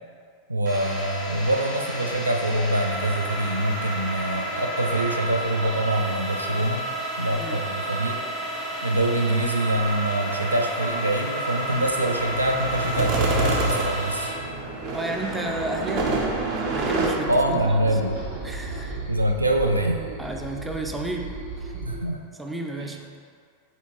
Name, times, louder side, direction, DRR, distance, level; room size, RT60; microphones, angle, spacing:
voice 1, 0.5-6.9 7.2-8.2 8.8-14.3 17.3-18.2 19.1-20.0 21.8-22.2 22.8-22.9, right 1 dB, 80° right, 3 dB, 0.3 m, -24 dB
sound 1, 0.7-14.3, right 1 dB, 30° right, 1.0 m, -31 dB
voice 2, 7.3-7.7 14.9-16.2 16.6-18.0 18.4-19.0 20.2-21.8 22.4-23.4, right 2 dB, 10° right, 2 dB, 0.4 m, -33 dB
sound 2, 11.7-17.1, right 2 dB, 45° right, 0.7 m, -28 dB
sound 3, 14.1-22.0, right 3 dB, 60° right, 1.2 m, -37 dB
4.3 x 3.9 x 2.8 m, 2.1 s
figure-of-eight pair, 90°, 0 cm